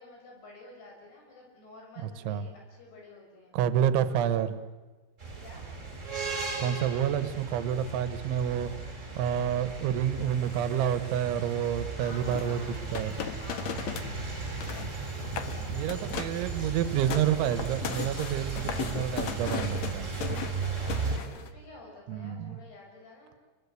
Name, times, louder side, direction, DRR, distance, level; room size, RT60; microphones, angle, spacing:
voice 1, 0.0-3.5 4.1-4.4 5.4-5.6 9.2-9.8 11.9-12.8 13.3-14.6 15.2-17.1 20.4-23.5, left 2 dB, 60° left, 0 dB, 8.1 m, -51 dB
voice 2, 2.0-2.5 3.5-4.5 6.6-8.7 9.2-12.6 12.9-13.1 14.7-15.1 15.7-20.1 22.1-22.6, right 9 dB, 85° right, 12 dB, 3.5 m, -29 dB
sound 1, 5.2-21.2, right 4 dB, 15° right, 4.2 m, -36 dB
sound 2, 12.3-14.1 14.4-14.9 15.2-15.6 15.9-16.4 16.8-21.5, left 8 dB, 85° left, 1.5 m, -36 dB
29.0 x 22.5 x 8.2 m, 1.3 s
omnidirectional pair, 5.3 m